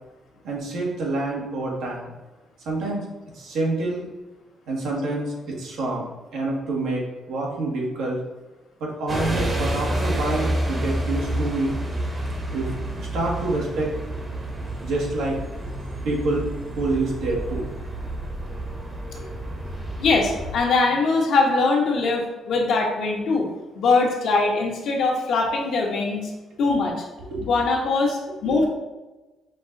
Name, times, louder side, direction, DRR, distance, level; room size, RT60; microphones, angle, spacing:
voice 1, 0.4-2.1 2.6-3.1 3.3-4.1 4.7-8.2 8.8-11.7 12.5-12.7 13.0-13.9 14.8-15.4 16.0-16.5 16.7-17.7 19.1-19.2 27.3-27.5, right 2 dB, 85° right, -3 dB, 1.3 m, -27 dB
sound 1, 9.1-20.6, right 1 dB, 30° right, 0.9 m, -29 dB
voice 2, 20.0-23.5 23.7-26.3 26.6-27.0 27.4-28.7, left 3 dB, 70° left, 0 dB, 1.0 m, -22 dB
5.1 x 2.4 x 3.8 m, 1.1 s
cardioid pair, 90°, 0 cm